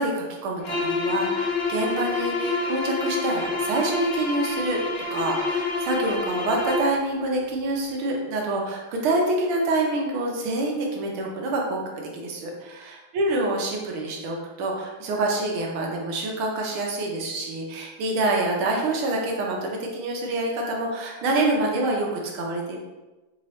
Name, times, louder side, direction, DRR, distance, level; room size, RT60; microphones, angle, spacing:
voice 1, 0.0-4.8 5.1-22.8, right 2 dB, 80° right, 0 dB, 1.6 m, -26 dB
sound 1, 0.6-7.0, left 3 dB, 65° left, 1.7 m, -27 dB
4.6 x 2.9 x 3.0 m, 1.1 s
omnidirectional pair, 2.3 m